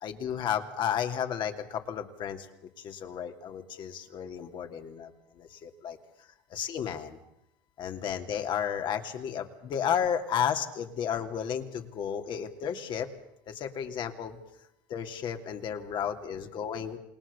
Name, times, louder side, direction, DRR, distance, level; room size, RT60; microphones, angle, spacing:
voice 1, 0.0-6.0 6.5-7.2 7.8-13.1 13.5-14.4 14.9-17.0, left 8 dB, 50° left, 5 dB, 2.9 m, -33 dB
28.5 x 19.5 x 7.0 m, 0.81 s
supercardioid pair, 105°, 10 cm